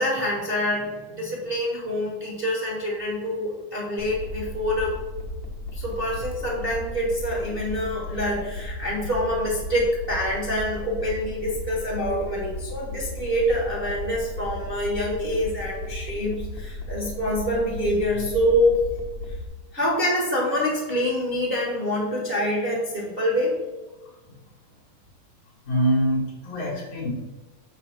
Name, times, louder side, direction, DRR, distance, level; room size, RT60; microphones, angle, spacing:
voice 1, 0.0-5.0 5.7-18.8 19.7-23.6, equal, 25° right, -4 dB, 1.4 m, -26 dB
sound 1, 4.0-19.5, left 1 dB, 50° left, 1.6 m, -35 dB
voice 2, 25.7-27.1, equal, 85° left, -6 dB, 4.3 m, -24 dB
9.0 x 3.2 x 6.0 m, 1.2 s
omnidirectional pair, 3.3 m